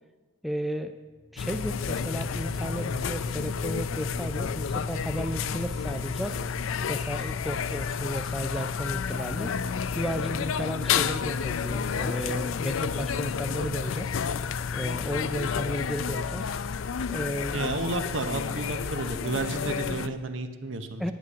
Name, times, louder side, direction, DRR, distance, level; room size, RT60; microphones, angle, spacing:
voice 1, 0.4-0.9 1.3-6.4 6.9-9.5 9.9-14.2 14.7-16.6 17.1-17.6 21.0-21.1, equal, ahead, 7 dB, 0.3 m, -34 dB
sound 1, 1.0-15.6, right 1 dB, 40° left, 1.2 m, -44 dB
sound 2, 1.4-20.1, left 6 dB, 80° left, 0.4 m, -30 dB
voice 2, 17.5-21.1, right 3 dB, 65° right, 9 dB, 0.8 m, -32 dB
10.5 x 8.4 x 6.2 m, 1.4 s
head